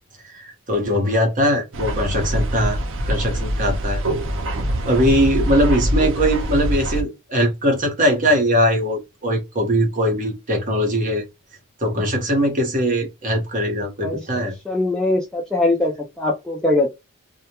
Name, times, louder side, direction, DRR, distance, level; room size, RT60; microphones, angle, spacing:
voice 1, 0.2-2.8 3.1-4.0 4.8-11.2 11.8-14.5, equal, 40° right, 0.8 m, -20 dB
sound 1, 1.7-7.0, right 1 dB, 60° right, 0.5 m, -24 dB
voice 2, 14.0-16.9, left 2 dB, 5° left, 0.4 m, -22 dB
2.2 x 2.1 x 2.8 m
head